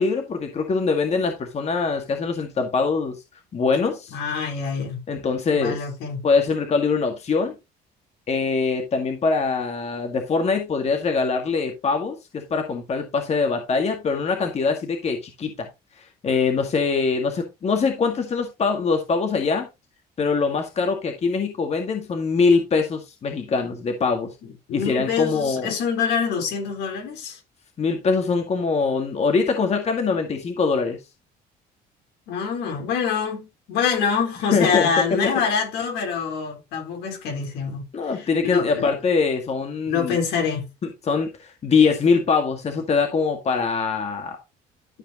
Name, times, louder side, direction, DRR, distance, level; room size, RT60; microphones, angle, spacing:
voice 1, 0.0-3.2 3.5-4.1 5.1-5.8 6.2-7.5 8.3-15.7 16.2-19.7 20.2-24.3 24.7-25.7 27.8-31.0 34.5-34.9 37.9-40.2 41.1-44.4, left 4 dB, 40° left, 1.9 m, -23 dB
voice 2, 4.1-5.0 5.5-6.2 24.4-27.4 32.3-37.9 38.1-38.9 39.9-40.7, left 6 dB, 80° left, 3.8 m, -25 dB
12.5 x 5.1 x 2.9 m
cardioid pair, 110°, 17 cm